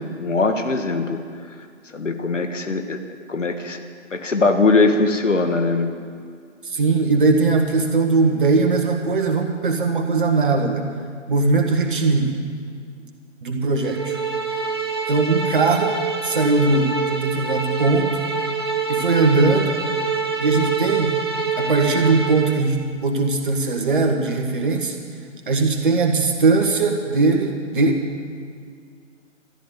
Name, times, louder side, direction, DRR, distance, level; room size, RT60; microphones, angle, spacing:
voice 1, 0.2-1.2 1.9-3.0 3.3-3.8 4.1-5.9, left 3 dB, 70° left, 7 dB, 1.5 m, -20 dB
voice 2, 6.6-10.8 11.3-12.4 13.4-14.2 15.1-15.9 16.2-18.1 18.9-19.7 20.4-21.1 21.6-22.8 23.0-25.0 25.5-28.0, right 3 dB, 40° right, 2 dB, 1.7 m, -19 dB
sound 1, 13.8-22.7, right 5 dB, 20° right, 0.6 m, -25 dB
13.5 x 12.0 x 7.0 m, 2.1 s
figure-of-eight pair, 145°, 38 cm